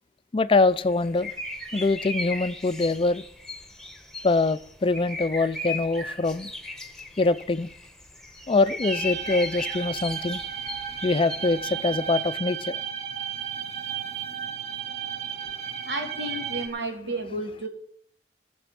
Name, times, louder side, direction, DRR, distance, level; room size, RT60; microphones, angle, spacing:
voice 1, 0.3-1.3 1.7-3.2 4.2-6.5 7.2-7.7 8.5-10.4 11.0-12.8, left 3 dB, 30° left, 14 dB, 0.4 m, -24 dB
sound 1, 0.7-12.3, left 2 dB, 5° left, 1.3 m, -37 dB
sound 2, 8.8-16.7, right 9 dB, 35° right, 2.2 m, -34 dB
voice 2, 15.8-17.7, right 1 dB, 85° right, 1 dB, 2.9 m, -32 dB
16.5 x 7.0 x 5.9 m, 0.64 s
head